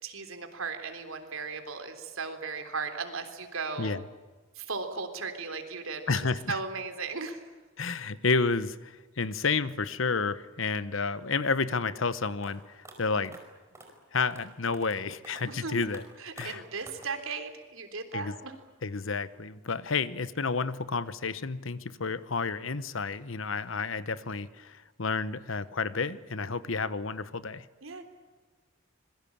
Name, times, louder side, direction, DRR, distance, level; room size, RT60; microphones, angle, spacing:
voice 1, 0.0-3.9 4.6-6.0 6.5-7.4 15.5-15.8 16.2-18.5 27.8-28.0, right 4 dB, 85° right, 7 dB, 3.5 m, -36 dB
voice 2, 6.1-6.6 7.8-13.4 14.1-16.0 16.4-16.6 18.1-18.4 18.8-27.7, left 4 dB, 70° left, 15 dB, 1.0 m, -30 dB
sound 1, 12.4-12.5 12.8-12.9 13.2-13.4 13.7-13.9 14.2-14.4 14.7-15.0 15.2-15.4 15.8-16.0 16.4-16.5 16.9-17.1, right 2 dB, 15° right, 5.1 m, -48 dB
26.0 x 22.0 x 8.7 m, 1.3 s
head